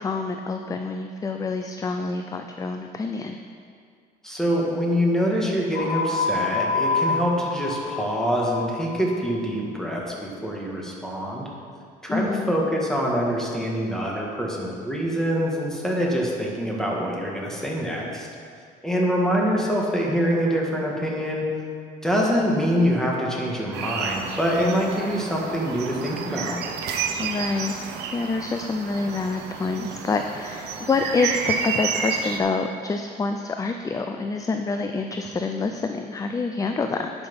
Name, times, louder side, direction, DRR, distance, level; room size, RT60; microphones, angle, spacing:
voice 1, 0.0-3.4 12.1-12.5 27.2-27.7 28.1-37.1, left 4 dB, 20° left, 6 dB, 0.4 m, -27 dB
voice 2, 4.2-11.5 12.0-18.3 18.8-21.4 22.0-26.6, equal, 5° left, -3 dB, 1.8 m, -25 dB
sound 1, 5.7-9.4, left 3 dB, 85° left, 1.4 m, -27 dB
sound 2, 23.7-32.4, right 6 dB, 90° right, 0.9 m, -30 dB
10.5 x 6.0 x 5.5 m, 2.2 s
cardioid pair, 120°, 17 cm